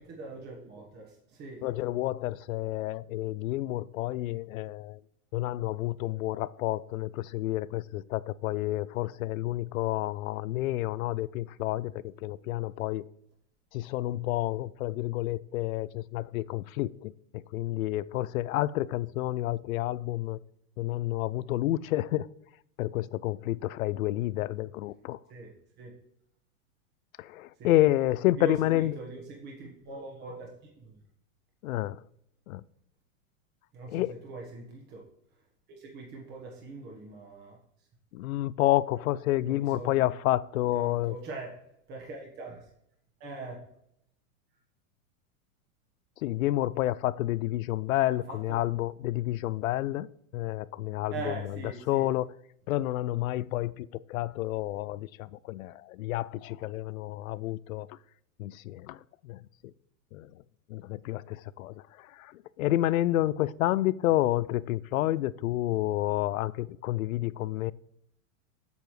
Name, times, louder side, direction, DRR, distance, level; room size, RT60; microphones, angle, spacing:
voice 1, 0.0-1.7 25.3-25.5 25.8-25.9 27.6-27.8 28.4-31.0 33.7-35.1 35.7-37.6 39.4-40.1 40.7-41.6 41.9-42.7 43.2-43.7 48.3-48.6 51.1-52.1, right 3 dB, 25° right, -1 dB, 1.3 m, -42 dB
voice 2, 1.6-5.0 5.3-13.0 13.7-20.4 20.8-22.3 22.8-25.2 27.2-29.0 31.6-32.0 32.5-32.6 33.9-34.2 38.1-41.2 46.2-52.3 52.7-58.0 58.4-59.5 60.1-60.4 60.7-67.7, left 15 dB, 80° left, 19 dB, 0.5 m, -30 dB
8.0 x 6.8 x 3.2 m, 0.73 s
supercardioid pair, 150°, 41 cm